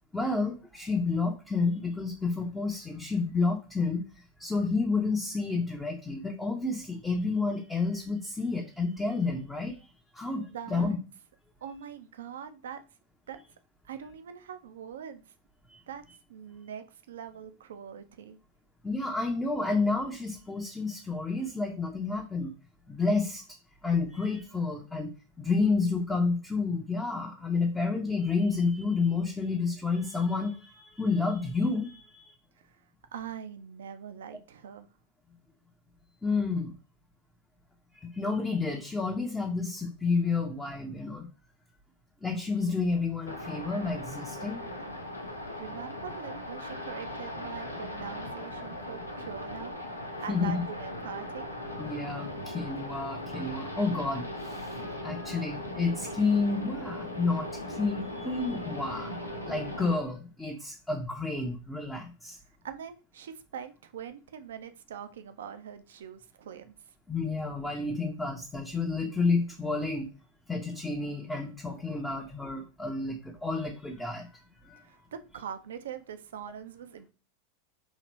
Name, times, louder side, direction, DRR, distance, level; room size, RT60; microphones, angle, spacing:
voice 1, 0.1-4.0 4.4-9.8 10.1-11.0 15.7-15.8 18.8-22.5 22.9-23.4 23.8-32.4 36.2-36.7 37.9-41.3 42.2-44.6 50.3-50.6 51.8-62.4 67.1-70.1 70.5-74.3 74.6-74.8, left 4 dB, 10° left, 0 dB, 0.6 m, -30 dB
voice 2, 10.2-11.0 11.6-12.8 13.3-13.4 13.8-15.2 15.9-16.0 16.3-18.4 32.6-32.8 33.1-34.9 45.5-49.8 50.2-51.5 62.6-66.7 74.8-77.1, right 8 dB, 60° right, 10 dB, 0.5 m, -42 dB
sound 1, 43.3-59.9, left 1 dB, 85° left, 0.7 m, -39 dB
3.9 x 2.9 x 3.1 m, 0.33 s
figure-of-eight pair, 90°, 0 cm